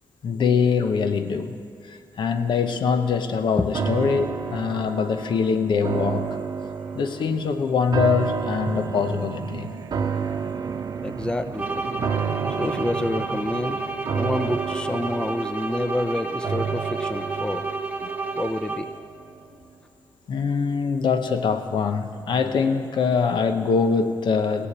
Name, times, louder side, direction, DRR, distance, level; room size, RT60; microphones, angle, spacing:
voice 1, 0.2-1.6 1.9-6.4 6.9-9.7 20.3-24.7, left 5 dB, 80° left, 8 dB, 0.9 m, -23 dB
sound 1, 3.7-19.0 19.4-19.5, right 6 dB, 60° right, 0.8 m, -31 dB
sound 2, 8.5-14.8, right 6 dB, 45° right, 0.4 m, -38 dB
voice 2, 11.0-11.9 12.5-13.9 14.1-17.6 18.3-18.9, left 1 dB, 10° left, 10 dB, 0.5 m, -28 dB
sound 3, 11.5-19.1, right 3 dB, 20° right, 1.1 m, -31 dB
17.0 x 7.0 x 8.7 m, 2.3 s
wide cardioid pair, 130°, 8 cm